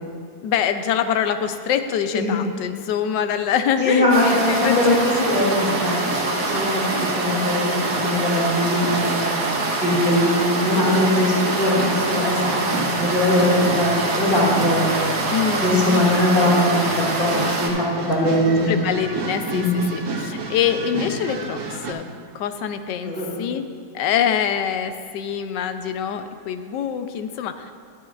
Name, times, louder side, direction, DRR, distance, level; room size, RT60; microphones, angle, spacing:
voice 1, 0.4-5.1 7.2-9.0 15.3-16.1 18.7-23.6 23.9-27.7, left 8 dB, 75° left, 9 dB, 1.2 m, -25 dB
voice 2, 3.8-4.9 5.2-6.8 7.2-7.7 8.0-9.3 9.8-11.8 12.1-14.8 15.6-18.7 19.5-19.8 23.0-23.3, left 1 dB, 50° left, -6 dB, 3.1 m, -21 dB
sound 1, 4.1-17.7, right 2 dB, 50° right, 1.5 m, -25 dB
sound 2, 4.7-21.9, right 3 dB, 80° right, 2.1 m, -32 dB
12.0 x 12.0 x 2.4 m, 2.1 s
omnidirectional pair, 2.0 m